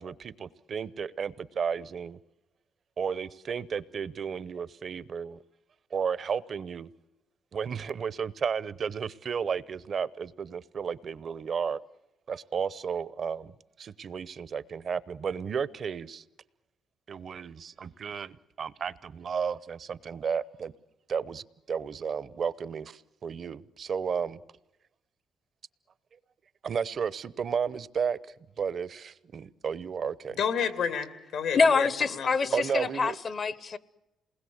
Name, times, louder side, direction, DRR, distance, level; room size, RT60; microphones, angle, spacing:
voice 1, 0.0-2.2 3.0-5.4 5.9-6.9 7.5-11.8 12.3-13.5 13.8-16.2 17.1-20.7 21.1-24.4 26.6-28.2 28.6-30.4 32.5-33.2, right 6 dB, 50° right, 0.8 m, -33 dB
voice 2, 30.4-32.6, left 7 dB, 80° left, 2.6 m, -31 dB
voice 3, 31.5-33.8, left 4 dB, 45° left, 1.0 m, -25 dB
28.0 x 20.0 x 8.0 m
cardioid pair, 90°, 0 cm